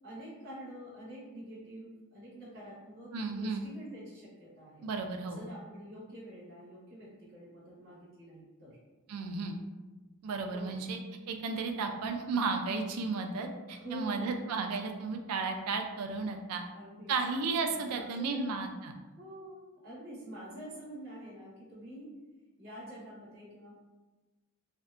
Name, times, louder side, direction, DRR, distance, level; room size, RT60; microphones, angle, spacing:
voice 1, 0.0-4.9 5.3-8.8 10.5-10.8 13.7-14.4 16.7-17.1 17.7-18.5 19.1-22.1 22.6-23.8, right 1 dB, 45° right, -8 dB, 0.9 m, -47 dB
voice 2, 3.1-3.6 4.8-5.4 9.1-9.6 10.2-11.0 11.3-16.6 17.1-18.9, right 4 dB, 80° right, 5 dB, 0.3 m, -34 dB
2.5 x 2.1 x 2.4 m, 1.2 s
head